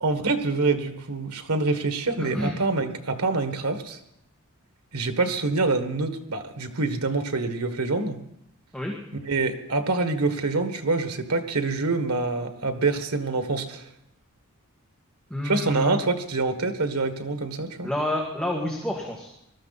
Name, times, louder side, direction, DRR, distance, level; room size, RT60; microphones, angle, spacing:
voice 1, 0.0-4.0 4.9-8.2 9.2-13.8 15.4-17.9, right 3 dB, 90° right, 8 dB, 1.6 m, -26 dB
voice 2, 2.2-2.6 8.7-8.9 15.3-16.0 17.8-19.4, left 1 dB, 5° left, -2 dB, 1.8 m, -29 dB
20.0 x 13.0 x 4.2 m, 0.77 s
head